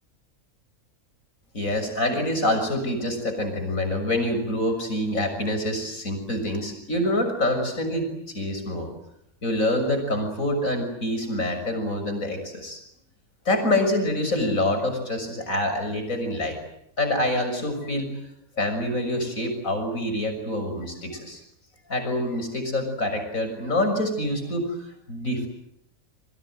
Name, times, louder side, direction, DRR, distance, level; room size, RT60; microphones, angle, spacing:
voice 1, 1.5-8.1 8.3-8.9 9.4-12.8 13.5-16.6 17.0-18.1 18.6-21.4 21.9-24.8 25.1-25.5, left 1 dB, 70° left, 6 dB, 7.0 m, -26 dB
28.5 x 24.5 x 7.8 m, 0.76 s
omnidirectional pair, 1.5 m